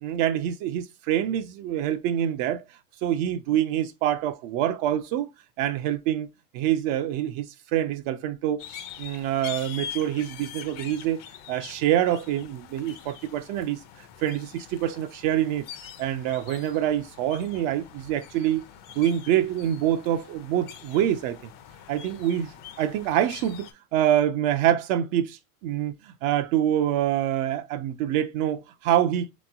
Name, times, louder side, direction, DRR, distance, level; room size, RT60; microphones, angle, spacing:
voice 1, 0.0-2.6 3.0-5.3 5.6-6.3 6.5-8.6 9.0-11.2 11.5-15.6 16.0-18.6 19.0-21.5 21.9-29.3, right 11 dB, 45° right, 0.5 m, -26 dB
sound 1, 8.6-23.7, left 9 dB, 45° left, 0.7 m, -44 dB
3.5 x 3.0 x 2.2 m
hypercardioid pair, 100°, 47 cm